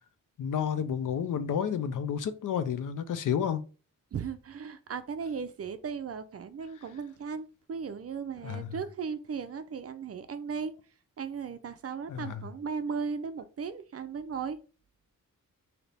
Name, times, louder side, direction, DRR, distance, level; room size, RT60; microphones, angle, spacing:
voice 1, 0.4-3.6 8.4-8.7 12.1-12.4, left 8 dB, 70° left, 0.5 m, -31 dB
voice 2, 4.1-10.7 11.2-14.6, right 6 dB, 45° right, 0.5 m, -36 dB
3.3 x 2.8 x 4.0 m
wide cardioid pair, 140°, 33 cm